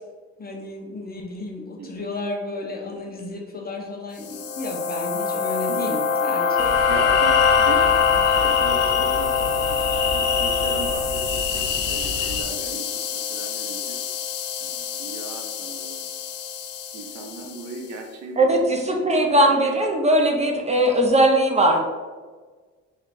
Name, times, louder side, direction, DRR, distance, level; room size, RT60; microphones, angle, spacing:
voice 1, 0.4-6.7, left 2 dB, 30° left, 0 dB, 0.9 m, -33 dB
voice 2, 1.8-2.1 5.7-6.0 6.9-14.0 14.6-16.0 16.9-19.6, right 3 dB, 65° right, 3 dB, 0.7 m, -37 dB
sound 1, 4.2-17.6, left 6 dB, 55° left, 0.5 m, -24 dB
sound 2, 6.6-12.4, left 5 dB, 80° left, 1.0 m, -27 dB
voice 3, 18.4-21.8, right 1 dB, 20° right, 2 dB, 0.7 m, -19 dB
3.3 x 2.8 x 4.2 m, 1.4 s
cardioid pair, 90°, 30 cm